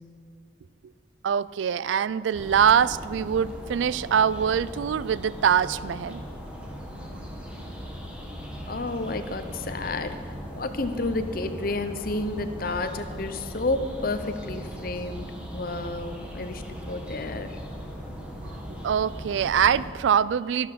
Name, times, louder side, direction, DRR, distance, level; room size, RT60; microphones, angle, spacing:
voice 1, 1.2-6.2 18.4-18.5 18.8-20.7, right 8 dB, 75° right, 18 dB, 0.3 m, -23 dB
sound 1, 2.3-19.9, equal, 5° right, 1.6 m, -38 dB
voice 2, 8.7-10.2 10.5-17.6, left 2 dB, 50° left, 9 dB, 0.8 m, -31 dB
13.5 x 11.5 x 5.9 m, 2.1 s
head